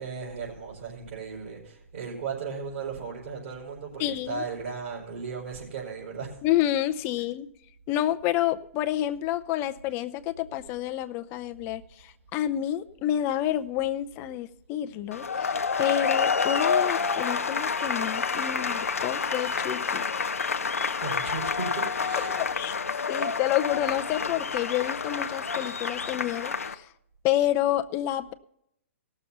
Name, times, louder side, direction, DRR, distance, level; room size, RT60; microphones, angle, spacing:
voice 1, 0.0-6.3 21.0-22.4, right 5 dB, 60° right, -6 dB, 4.5 m, -36 dB
voice 2, 4.0-4.4 6.4-7.5 7.9-15.5 15.8-20.1 22.4-22.8 23.1-26.9 27.2-28.3, left 13 dB, 30° left, 10 dB, 0.6 m, -29 dB
sound 1, 15.1-26.7, left 5 dB, 85° left, 0.7 m, -28 dB
18.0 x 6.8 x 5.6 m, 0.74 s
hypercardioid pair, 125°, 7 cm